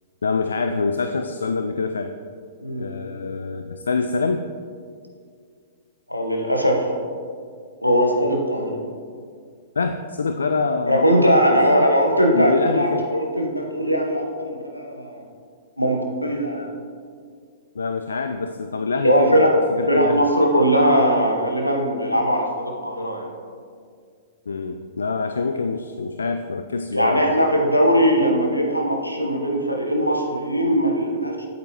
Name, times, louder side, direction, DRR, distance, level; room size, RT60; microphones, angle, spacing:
voice 1, 0.2-2.1 2.8-4.5 9.8-11.9 12.3-13.1 17.7-20.3 24.5-27.4, left 4 dB, 70° left, 7 dB, 0.3 m, -25 dB
voice 2, 6.1-6.9 7.8-8.8 10.9-15.2 15.8-16.7 18.9-19.5 19.9-23.3 26.9-31.5, equal, 90° left, 1 dB, 1.1 m, -20 dB
8.3 x 8.3 x 3.0 m, 2.1 s
figure-of-eight pair, 105°, 0 cm